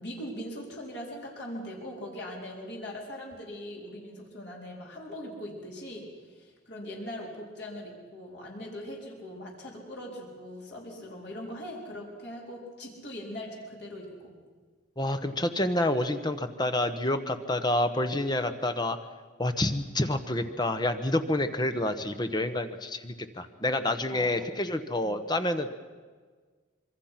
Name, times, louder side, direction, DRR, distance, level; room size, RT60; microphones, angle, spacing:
voice 1, 0.0-14.4 24.1-24.3 25.0-25.2, equal, 60° left, -2 dB, 4.4 m, -41 dB
voice 2, 15.0-19.0 19.4-25.7, left 1 dB, 20° left, 9 dB, 1.1 m, -28 dB
25.5 x 23.5 x 5.9 m, 1.5 s
head